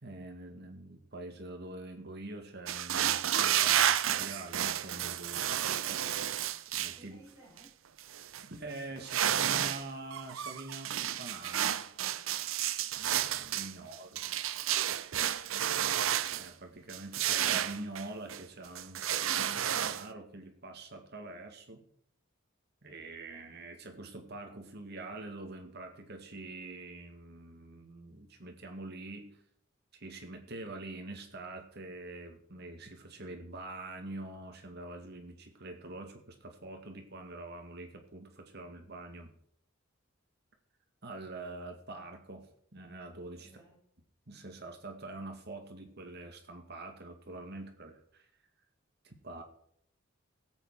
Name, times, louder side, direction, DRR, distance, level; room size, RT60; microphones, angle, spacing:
voice 1, 0.0-5.6 6.7-7.2 8.5-11.8 12.9-14.2 16.3-21.8 22.8-29.4 29.9-39.3 41.0-42.5 42.7-43.5 44.3-48.3 49.0-49.4, right 2 dB, 50° right, 4 dB, 2.0 m, -45 dB
sound 1, 2.7-7.0 7.6-7.7 8.0-8.4 9.0-9.8 10.1-16.5 16.9-18.4 18.8-20.0, right 10 dB, 70° right, 0.6 m, -31 dB
voice 2, 6.9-7.7 14.1-14.4 43.4-43.8, right 2 dB, 15° right, -6 dB, 7.0 m, -58 dB
17.5 x 8.2 x 4.8 m, 0.66 s
head